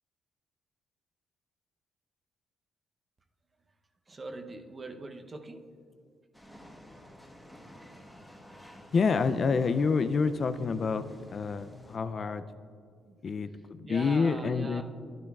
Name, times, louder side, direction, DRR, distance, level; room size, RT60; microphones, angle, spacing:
voice 1, 4.1-5.6 13.0-13.2 13.8-14.8, right 2 dB, 30° right, 6 dB, 0.7 m, -42 dB
sound 1, 6.3-12.0, equal, ahead, 1.1 m, -51 dB
voice 2, 8.9-11.1 11.3-12.4 13.2-13.5 13.8-14.8, left 5 dB, 45° left, 11 dB, 0.4 m, -27 dB
11.0 x 10.5 x 2.4 m, 2.3 s
cardioid pair, 90°, 0 cm